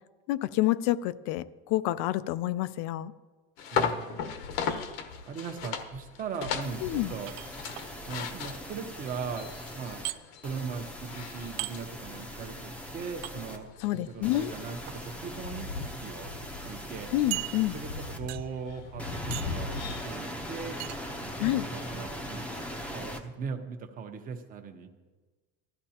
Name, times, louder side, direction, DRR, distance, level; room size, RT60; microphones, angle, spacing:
voice 1, 0.3-3.1 6.8-7.1 13.8-14.5 17.1-17.7 21.4-21.7, left 15 dB, 55° left, 16 dB, 0.5 m, -28 dB
sound 1, 3.6-20.0, left 6 dB, 85° left, 1.2 m, -38 dB
voice 2, 3.7-4.4 5.3-7.3 8.1-10.0 10.4-13.7 14.1-16.3 16.6-17.1 17.7-20.8 21.2-22.5 22.9-24.9, right 5 dB, 30° right, 5 dB, 1.0 m, -39 dB
sound 2, 6.6-10.1 10.4-13.6 14.2-18.2 19.0-23.2, equal, 5° left, 0.7 m, -40 dB
sound 3, 7.3-7.9 10.0-10.2 11.6-11.8 13.2-13.3 14.7-15.0 15.7-15.8 16.2-16.3 17.3-17.9 18.3-18.6 19.3-19.6 20.8-21.0, right 18 dB, 85° right, 0.6 m, -37 dB
18.5 x 13.5 x 2.9 m, 1.3 s
cardioid pair, 165°, 30 cm